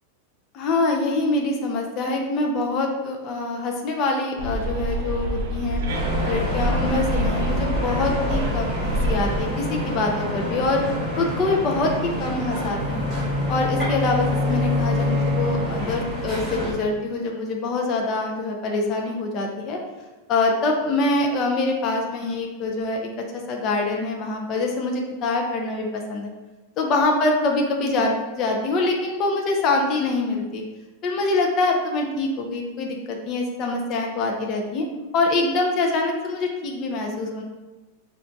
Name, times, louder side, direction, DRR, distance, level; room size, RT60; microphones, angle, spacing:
voice 1, 0.5-5.8 6.2-10.8 11.2-13.1 13.5-19.8 20.3-23.1 23.5-26.3 26.8-30.6 31.0-34.8 35.1-37.4, left 2 dB, 30° left, 1 dB, 0.4 m, -24 dB
Bus, 4.4-9.4, right 1 dB, 65° right, 0.5 m, -26 dB
sound 1, 5.9-16.7, equal, 10° left, 1.2 m, -28 dB
sound 2, 12.7-16.2, left 2 dB, 25° right, 0.7 m, -26 dB
5.0 x 2.3 x 2.5 m, 1.2 s
supercardioid pair, 170°, 0 cm